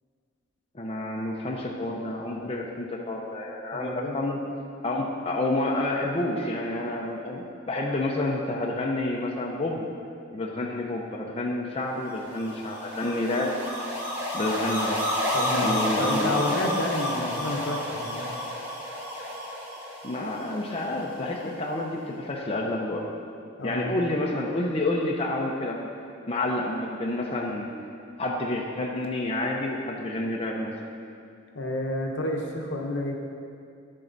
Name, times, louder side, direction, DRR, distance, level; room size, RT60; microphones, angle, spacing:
voice 1, 0.7-4.4 4.8-9.8 10.3-13.5 14.3-15.0 15.6-16.6 20.0-23.0 23.6-25.9 26.3-27.7 28.2-30.7, left 1 dB, 30° left, -1 dB, 0.6 m, -29 dB
voice 2, 3.7-4.3 15.3-18.3 23.6-23.9 31.5-33.1, left 1 dB, 65° left, 1 dB, 1.0 m, -30 dB
sound 1, 12.1-21.4, left 1 dB, 10° right, 1.9 m, -31 dB
10.5 x 7.5 x 4.0 m, 2.4 s
head